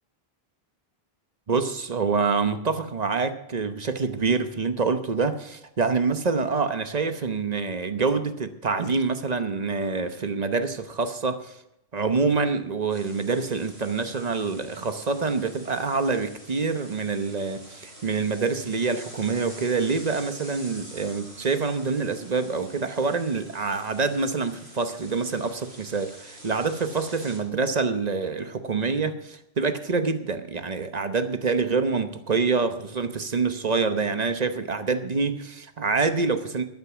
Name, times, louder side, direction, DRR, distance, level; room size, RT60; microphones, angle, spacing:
voice 1, 1.5-11.6 11.9-36.6, right 4 dB, 40° right, 1.0 m, -26 dB
sound 1, 12.9-27.4, right 1 dB, 85° right, 4.8 m, -46 dB
13.5 x 9.4 x 6.0 m
omnidirectional pair, 1.1 m